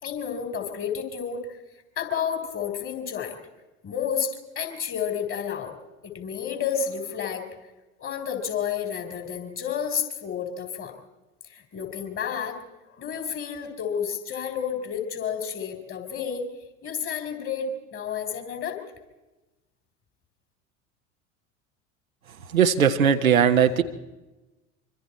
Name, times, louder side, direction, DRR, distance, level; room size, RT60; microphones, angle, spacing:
voice 1, 0.0-1.6 2.0-3.4 3.8-5.7 6.0-7.6 8.0-10.9 11.4-12.6 13.0-16.4 16.8-18.8, left 7 dB, 30° left, 6 dB, 3.8 m, -31 dB
voice 2, 22.5-23.8, right 8 dB, 75° right, 7 dB, 1.3 m, -19 dB
25.0 x 24.5 x 4.3 m, 1.1 s
figure-of-eight pair, 75°, 41 cm